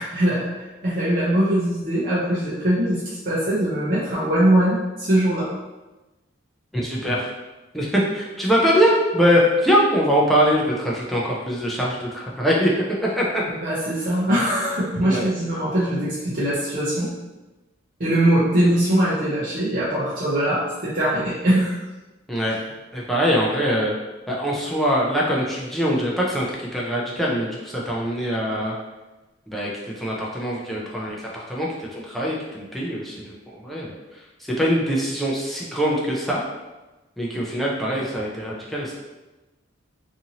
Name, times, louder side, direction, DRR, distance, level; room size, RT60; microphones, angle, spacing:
voice 1, 0.0-5.5 13.6-17.1 18.0-21.8, right 1 dB, 45° right, -9 dB, 0.6 m, -21 dB
voice 2, 6.7-7.3 7.7-12.7 13.0-13.4 15.0-15.3 22.3-22.6 22.9-24.0 24.3-28.7 29.5-36.4 37.2-39.0, equal, ahead, -5 dB, 0.4 m, -23 dB
2.6 x 2.6 x 2.8 m, 1.1 s
head